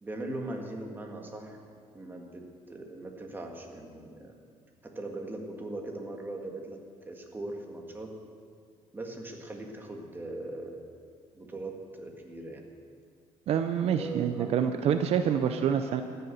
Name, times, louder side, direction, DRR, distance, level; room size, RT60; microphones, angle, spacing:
voice 1, 0.0-1.6 1.9-4.3 4.8-6.8 7.1-8.2 8.9-10.9 11.3-12.7 13.8-14.5, right 2 dB, 15° right, 1 dB, 1.8 m, -40 dB
voice 2, 13.5-16.0, right 8 dB, 60° right, 8 dB, 0.6 m, -27 dB
14.0 x 6.9 x 9.4 m, 2.1 s
cardioid pair, 125°, 12 cm